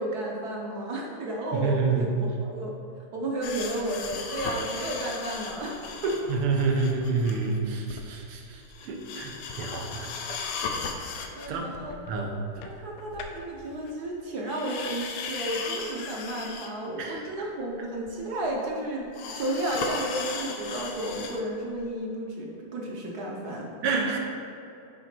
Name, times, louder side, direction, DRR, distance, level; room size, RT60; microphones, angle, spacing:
voice 1, 0.0-2.7 3.1-6.3 11.3-12.2 12.6-23.7, right 1 dB, 55° right, -2 dB, 1.2 m, -32 dB
voice 2, 1.5-2.1 6.3-10.2 10.6-10.7 11.0-11.1 11.5-11.7 12.1-12.3 17.0-17.2 23.8-24.2, right 4 dB, 85° right, 2 dB, 1.8 m, -28 dB
sound 1, 3.4-7.6 7.9-8.1 8.4-14.1 14.5-16.9 17.2-17.3 18.1-18.2 19.1-21.4 21.8-21.9, left 5 dB, 85° left, 1.6 m, -36 dB
8.0 x 4.9 x 4.4 m, 2.6 s
omnidirectional pair, 2.4 m